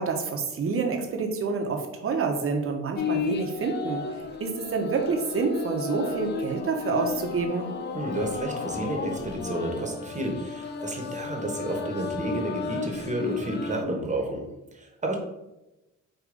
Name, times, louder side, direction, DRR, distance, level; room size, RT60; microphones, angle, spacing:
voice 1, 0.0-4.0 4.4-7.7, right 4 dB, 45° right, 2 dB, 0.9 m, -28 dB
sound 1, 2.9-13.8, left 5 dB, 35° left, 0.4 m, -33 dB
voice 2, 7.9-14.5 14.7-15.2, right 1 dB, 25° right, 2 dB, 1.1 m, -31 dB
4.9 x 2.6 x 3.8 m, 0.97 s
cardioid pair, 90°, 30 cm